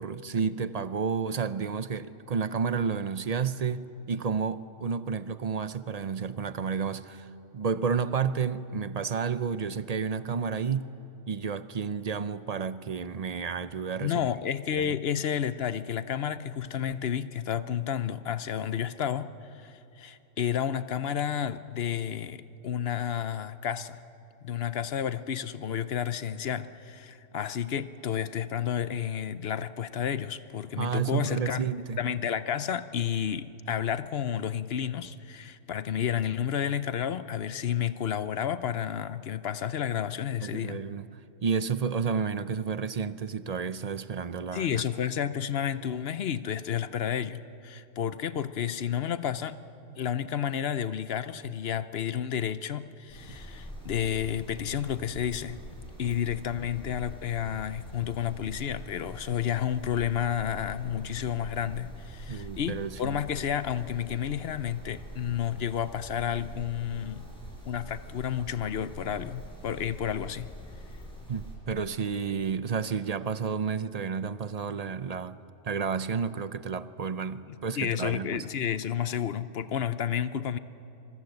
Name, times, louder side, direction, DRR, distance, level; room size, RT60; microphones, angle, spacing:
voice 1, 0.0-7.3 7.5-10.9 11.3-14.1 14.7-14.9 30.8-32.0 40.4-41.1 41.4-44.8 62.3-63.2 71.3-75.4 75.6-78.5, right 6 dB, 45° right, 0.6 m, -31 dB
voice 2, 14.0-24.0 24.4-31.6 32.0-40.8 44.5-49.6 50.0-55.6 56.0-67.2 67.6-70.5 77.5-80.6, left 9 dB, 60° left, 0.9 m, -31 dB
sound 1, 53.1-71.6, equal, 5° left, 6.3 m, -44 dB
24.5 x 23.0 x 7.9 m
omnidirectional pair, 1.3 m